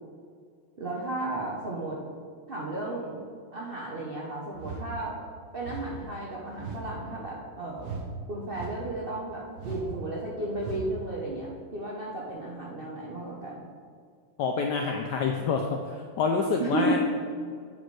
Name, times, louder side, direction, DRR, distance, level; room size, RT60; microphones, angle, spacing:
voice 1, 0.8-2.0 2.5-3.2 3.5-5.2 5.5-8.0 8.3-13.6 16.6-17.0, right 2 dB, 65° right, -3 dB, 0.5 m, -34 dB
sound 1, 4.5-4.9 5.6-5.9 6.6-6.9 7.8-8.1 8.5-8.9 9.6-9.9 10.5-10.9, right 4 dB, 80° right, 1.7 m, -38 dB
voice 2, 14.4-17.0, left 5 dB, 80° left, 3 dB, 0.9 m, -27 dB
9.1 x 4.2 x 4.7 m, 2.2 s
omnidirectional pair, 2.4 m